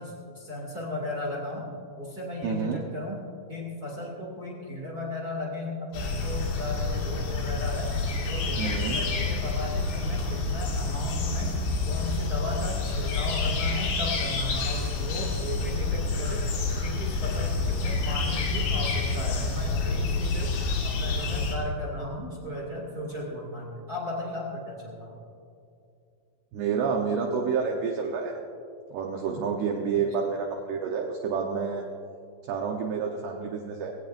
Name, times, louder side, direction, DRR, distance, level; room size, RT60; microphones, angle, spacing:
voice 1, 0.0-1.6 2.0-3.2 3.5-7.9 8.2-11.5 11.8-16.5 16.8-20.5 20.8-25.2, left 1 dB, 35° right, -3 dB, 1.5 m, -35 dB
voice 2, 2.4-2.9 8.6-9.0 26.5-28.4 28.9-31.8 32.5-33.9, right 5 dB, 75° right, 2 dB, 2.5 m, -29 dB
sound 1, 5.9-21.6, left 3 dB, 70° left, 4.5 m, -28 dB
22.0 x 17.5 x 2.6 m, 2.5 s
omnidirectional pair, 5.8 m